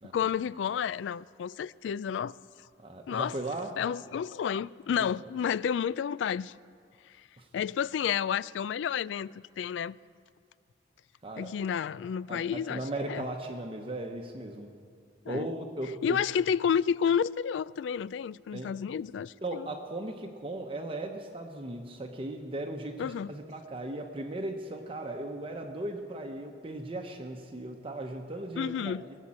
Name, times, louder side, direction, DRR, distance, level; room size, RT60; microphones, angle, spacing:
voice 1, 0.1-2.4 3.1-3.4 3.8-6.6 7.1-7.2 7.5-10.0 11.4-13.3 15.3-15.5 16.0-19.7 23.0-23.3 28.6-29.0, left 8 dB, 75° left, 0.3 m, -30 dB
voice 2, 2.8-3.7 4.9-5.0 7.4-7.5 11.2-11.5 12.3-14.7 15.3-16.2 18.5-18.7 19.4-29.2, right 2 dB, 30° right, 0.9 m, -37 dB
20.5 x 7.4 x 8.6 m
head